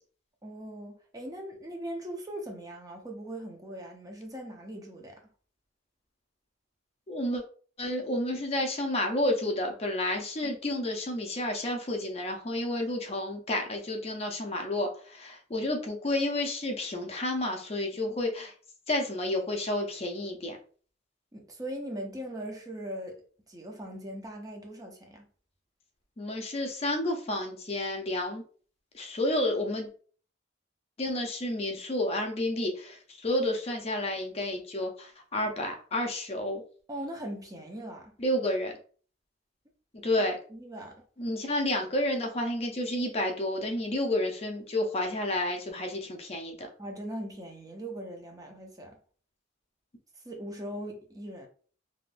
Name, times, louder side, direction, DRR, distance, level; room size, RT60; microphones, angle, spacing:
voice 1, 0.4-5.2 10.4-10.5 18.0-18.2 21.3-23.2 23.5-25.3 36.9-38.1 40.5-41.0 46.8-49.0 50.2-51.5, right 1 dB, 20° right, 0.6 m, -40 dB
voice 2, 7.1-7.4 7.8-18.5 18.9-20.6 26.2-28.4 28.9-29.9 31.0-36.6 38.2-38.7 40.0-40.4 41.2-46.7, left 1 dB, 35° left, 0.6 m, -30 dB
3.4 x 2.5 x 2.5 m
head